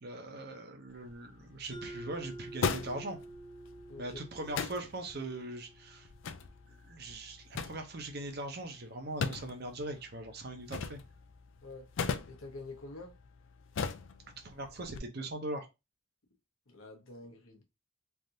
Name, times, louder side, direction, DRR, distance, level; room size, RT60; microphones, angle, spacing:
voice 1, 0.0-3.2 4.0-6.1 6.9-11.0 14.4-15.7, right 2 dB, 50° right, 0.7 m, -40 dB
sound 1, 0.9-15.0, left 5 dB, 65° left, 0.4 m, -41 dB
Mallet percussion, 1.7-6.3, right 2 dB, ahead, 0.7 m, -49 dB
voice 2, 3.9-4.2 11.6-11.9 12.3-13.2 16.7-17.6, left 2 dB, 80° left, 1.0 m, -47 dB
3.4 x 2.5 x 2.7 m
head